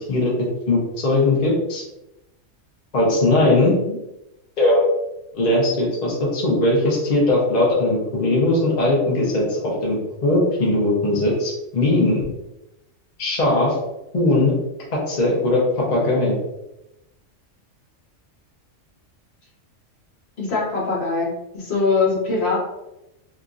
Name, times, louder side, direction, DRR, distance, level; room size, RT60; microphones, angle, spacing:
voice 1, 0.1-1.8 2.9-3.8 4.6-4.8 5.4-12.2 13.2-13.8 14.1-14.5 15.1-16.4, left 2 dB, 40° left, -4 dB, 0.7 m, -19 dB
voice 2, 20.4-22.7, left 4 dB, 55° left, -5 dB, 1.1 m, -22 dB
3.0 x 2.4 x 2.4 m, 0.90 s
omnidirectional pair, 1.3 m